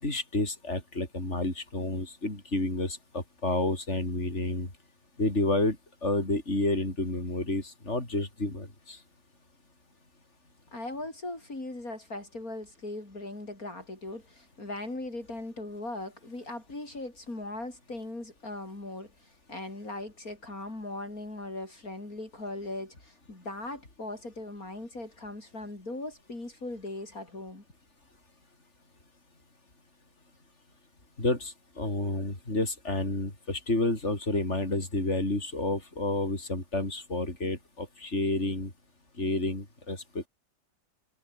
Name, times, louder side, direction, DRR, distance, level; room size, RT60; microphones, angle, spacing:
voice 1, 0.0-4.7 5.2-5.8 6.0-9.0 31.2-38.7 39.2-40.3, left 2 dB, 45° left, 6.2 m, -30 dB
voice 2, 10.7-27.6, left 2 dB, 60° left, 6.3 m, -39 dB
omnidirectional pair, 1.7 m